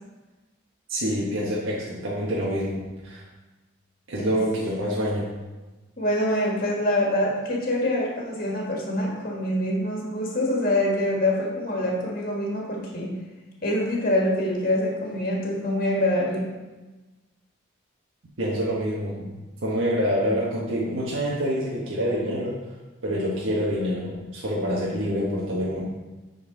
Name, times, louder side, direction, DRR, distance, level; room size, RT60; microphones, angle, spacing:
voice 1, 0.9-3.2 4.1-5.3 18.4-19.3 19.6-22.5 23.0-25.8, equal, 75° right, -6 dB, 1.3 m, -26 dB
voice 2, 6.0-13.1 13.6-16.5, left 1 dB, 45° left, -2 dB, 1.5 m, -25 dB
9.6 x 4.2 x 3.9 m, 1.2 s
head